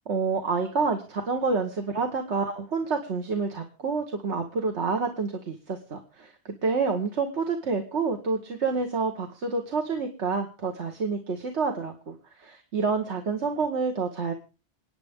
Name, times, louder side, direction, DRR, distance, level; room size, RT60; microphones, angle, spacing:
voice 1, 0.1-6.3 6.6-14.3, right 4 dB, 75° right, 5 dB, 1.6 m, -28 dB
28.0 x 9.3 x 3.6 m, 0.33 s
omnidirectional pair, 1.2 m